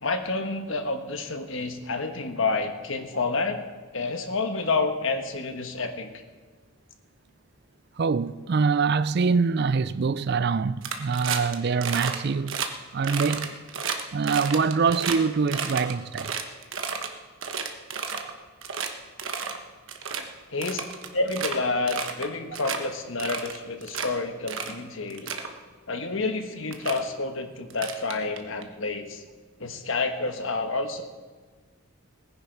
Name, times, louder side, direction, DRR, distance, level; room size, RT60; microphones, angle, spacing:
voice 1, 0.0-3.6 3.9-6.1 20.5-20.8 21.1-25.3 25.9-29.2 29.6-31.0, left 3 dB, 65° left, 1.3 m, -29 dB
voice 2, 8.0-12.6 12.9-13.6 14.1-16.3, right 5 dB, 50° right, 0.4 m, -24 dB
sound 1, 10.8-11.5 11.8-12.2 12.5-12.7 13.0-15.2 15.5-17.1 17.4-18.3 18.6-18.9 19.2-19.6 19.9-20.2 20.6-21.6 21.9-22.3 22.5-22.8 23.2-24.1 24.5-24.8 25.1-25.5 26.3-26.4 26.7-27.0 27.7-28.6, right 6 dB, 65° right, 1.2 m, -31 dB
18.5 x 10.5 x 4.6 m
head